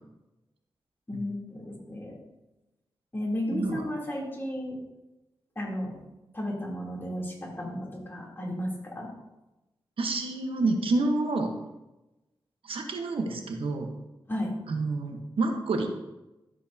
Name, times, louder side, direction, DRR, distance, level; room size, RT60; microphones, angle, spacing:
voice 1, 1.1-2.2 3.1-4.8 5.5-5.9 6.3-9.1 14.3-14.5, left 1 dB, 25° left, -3 dB, 3.2 m, -33 dB
voice 2, 3.5-3.8 10.0-11.5 12.6-13.9 14.7-15.9, right 3 dB, 80° right, 3 dB, 1.2 m, -28 dB
12.5 x 7.4 x 2.8 m, 0.99 s
cardioid pair, 80°, 9 cm